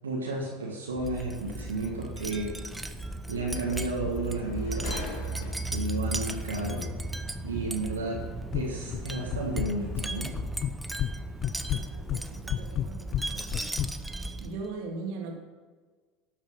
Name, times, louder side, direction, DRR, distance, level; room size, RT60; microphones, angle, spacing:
voice 1, 0.0-2.5 3.3-4.9 5.7-6.9 7.4-8.3 8.5-10.3, right 2 dB, 85° right, -3 dB, 1.9 m, -32 dB
Wind chime, 0.9-14.7, right 2 dB, 5° right, 0.8 m, -36 dB
sound 1, 1.5-1.6 3.3-3.4 3.7-5.9 6.8-6.9, left 5 dB, 65° left, 1.9 m, -42 dB
sound 2, 8.5-9.0 9.3-10.1 10.4-11.1 11.4-13.9, left 10 dB, 45° left, 0.5 m, -30 dB
voice 2, 11.7-13.7 14.4-15.3, right 4 dB, 60° right, 1 dB, 2.4 m, -40 dB
13.0 x 7.2 x 5.6 m, 1.4 s
hypercardioid pair, 80°, 0 cm